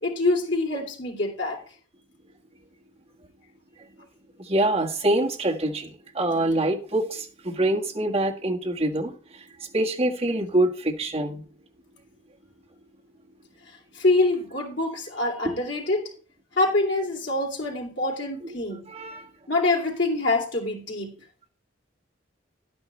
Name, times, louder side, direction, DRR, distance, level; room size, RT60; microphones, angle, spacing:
voice 1, 0.0-1.6 13.9-16.1 16.5-18.9 19.5-21.1, left 2 dB, 70° left, 3.1 m, -25 dB
voice 2, 4.4-11.4 15.4-15.6 18.9-19.3, right 1 dB, 30° right, 1.7 m, -25 dB
11.5 x 9.4 x 3.3 m
head